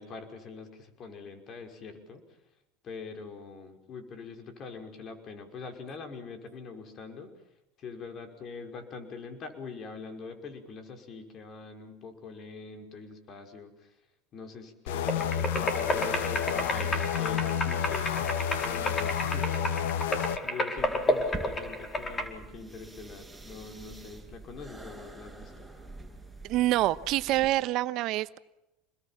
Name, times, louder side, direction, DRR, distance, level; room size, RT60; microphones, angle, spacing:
voice 1, 0.0-2.2 2.8-7.3 7.8-13.9 14.3-19.5 19.8-25.7, left 4 dB, 45° left, 5 dB, 5.4 m, -43 dB
sound 1, 14.9-20.4, left 8 dB, 80° left, 1.5 m, -30 dB
sound 2, 15.1-22.3, left 1 dB, 25° left, 4.7 m, -32 dB
sound 3, 20.8-27.5, right 2 dB, ahead, 7.2 m, -46 dB
voice 2, 26.4-28.4, right 16 dB, 55° right, 15 dB, 1.1 m, -26 dB
28.5 x 21.5 x 7.5 m, 0.90 s
hypercardioid pair, 90°, 0 cm